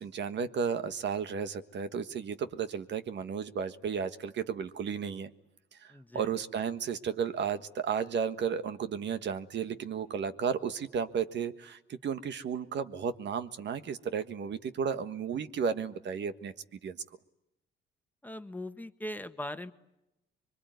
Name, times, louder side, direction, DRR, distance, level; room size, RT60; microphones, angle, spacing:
voice 1, 0.0-5.3 5.8-16.5 16.8-17.0, right 7 dB, 65° right, 11 dB, 1.6 m, -33 dB
voice 2, 5.9-6.3 18.2-19.7, left 1 dB, 10° left, 9 dB, 1.5 m, -40 dB
25.5 x 23.5 x 9.5 m, 0.88 s
cardioid pair, 90°, 20 cm